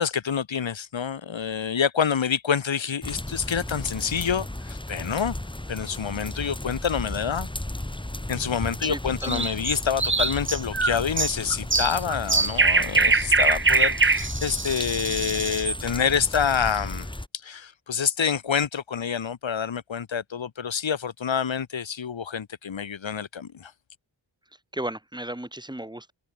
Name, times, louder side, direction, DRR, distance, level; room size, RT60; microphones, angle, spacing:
voice 1, 0.0-5.4 5.7-7.5 8.3-17.1 17.4-23.7, left 7 dB, 80° left, 2.9 m, -27 dB
sound 1, 3.0-17.3, left 1 dB, 10° left, 2.4 m, -35 dB
voice 2, 8.8-9.5 24.7-26.1, right 1 dB, 10° right, 4.5 m, -34 dB
sound 2, 9.2-15.8, right 3 dB, 25° right, 1.4 m, -23 dB
wide cardioid pair, 75°, 45 cm